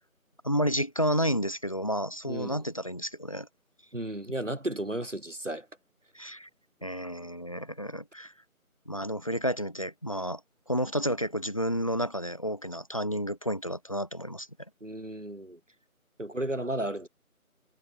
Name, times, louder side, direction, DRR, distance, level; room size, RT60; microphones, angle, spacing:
voice 1, 0.4-3.5 6.1-6.5 6.8-8.3 8.9-10.4 10.7-14.5, equal, 25° left, 3.5 m, -31 dB
voice 2, 2.3-2.6 3.9-5.7 14.8-15.6 16.2-17.1, right 1 dB, 55° right, 4.2 m, -34 dB
figure-of-eight pair, 175°, 43 cm